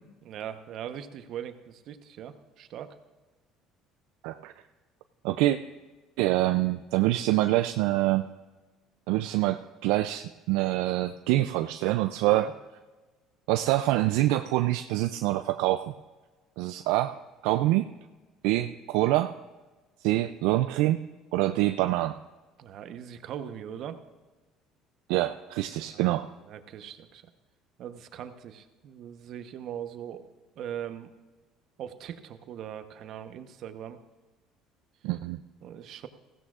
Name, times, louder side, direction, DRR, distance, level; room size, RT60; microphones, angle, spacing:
voice 1, 0.2-2.9 12.4-12.5 22.6-24.0 25.9-26.1 26.4-27.2 27.8-30.3 30.6-31.1 31.8-34.0 35.6-36.1, right 9 dB, 60° right, 9 dB, 0.9 m, -40 dB
voice 2, 5.2-5.6 6.2-8.3 9.1-12.5 13.5-15.9 16.6-17.9 18.4-19.3 20.0-21.0 21.3-22.2 25.1-26.3 35.0-35.4, right 16 dB, 80° right, 9 dB, 0.4 m, -25 dB
15.5 x 15.5 x 2.4 m, 1.2 s
supercardioid pair, 95°, 0 cm